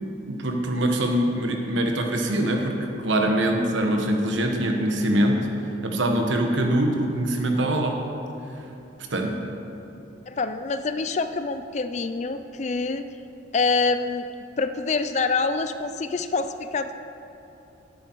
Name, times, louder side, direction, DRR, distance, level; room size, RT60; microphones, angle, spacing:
voice 1, 0.3-5.4 5.8-8.0 9.1-9.3, right 1 dB, 75° right, 3 dB, 1.2 m, -23 dB
voice 2, 10.3-13.0 13.5-14.3 14.6-17.0, left 4 dB, 35° left, 10 dB, 0.4 m, -26 dB
11.0 x 8.6 x 4.6 m, 2.9 s
head